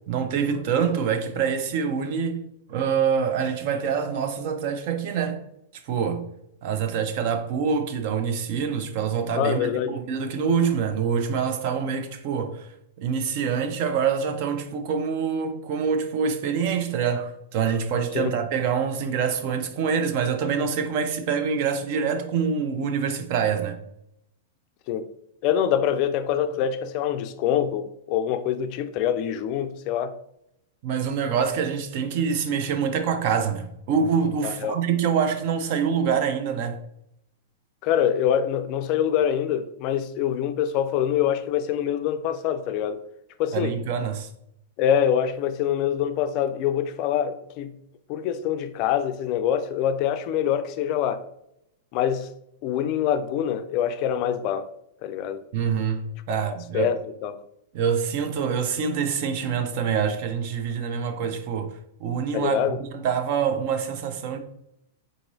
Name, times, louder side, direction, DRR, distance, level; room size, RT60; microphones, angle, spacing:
voice 1, 0.1-2.4 2.7-5.4 5.9-6.2 6.6-12.7 13.0-23.8 30.8-36.8 43.5-44.3 55.5-56.9 57.7-61.7 62.0-64.4, right 6 dB, 50° right, 0.5 m, -25 dB
voice 2, 9.4-9.9 18.1-18.3 24.9-25.1 25.4-30.2 34.4-34.8 37.8-43.0 43.4-43.8 44.8-47.8 48.1-51.2 51.9-52.3 52.6-54.7 55.0-55.4 56.3-56.4 56.7-57.3 62.3-62.8, left 9 dB, 45° left, 0.3 m, -25 dB
3.8 x 2.9 x 2.6 m
hypercardioid pair, 130°, 0 cm